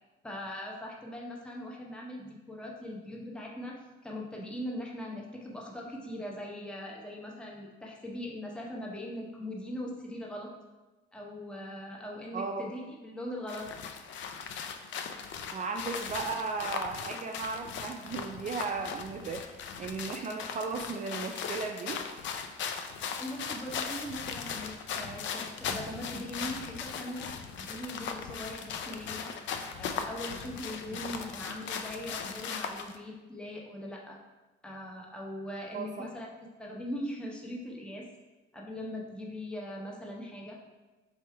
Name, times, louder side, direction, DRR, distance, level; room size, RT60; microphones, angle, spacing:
voice 1, 0.2-10.5 11.1-13.7 23.2-27.3 27.7-29.4 29.8-34.2 34.6-36.3 36.6-38.1 38.5-40.6, left 1 dB, 5° left, -2 dB, 0.7 m, -40 dB
sound 1, 13.5-33.0, left 6 dB, 70° left, 0.4 m, -38 dB
voice 2, 15.5-22.0 30.9-31.0 35.7-36.1, right 4 dB, 40° right, 3 dB, 0.4 m, -36 dB
3.5 x 3.1 x 4.5 m, 1.1 s
cardioid pair, 90°, 20 cm